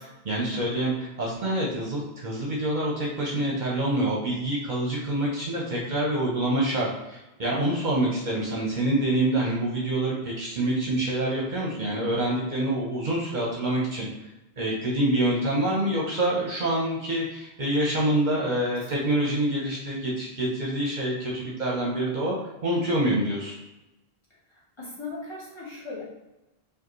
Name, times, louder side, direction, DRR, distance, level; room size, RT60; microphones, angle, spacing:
voice 1, 0.2-14.1 14.6-22.4 22.6-23.6, right 1 dB, 50° right, -4 dB, 0.9 m, -26 dB
voice 2, 24.5-26.0, left 3 dB, 25° left, -7 dB, 1.3 m, -38 dB
4.8 x 2.6 x 3.1 m, 0.99 s
omnidirectional pair, 1.1 m